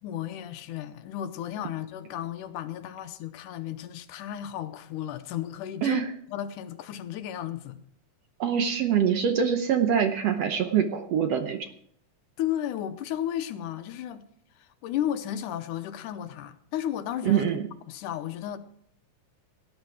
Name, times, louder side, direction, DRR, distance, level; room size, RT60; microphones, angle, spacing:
voice 1, 0.0-6.0 6.3-7.8 12.4-14.2 14.6-17.4 17.9-18.6, left 11 dB, 80° left, 2.3 m, -34 dB
voice 2, 8.4-11.7 17.2-17.6, right 8 dB, 65° right, 1.7 m, -24 dB
18.0 x 10.5 x 4.9 m
omnidirectional pair, 3.7 m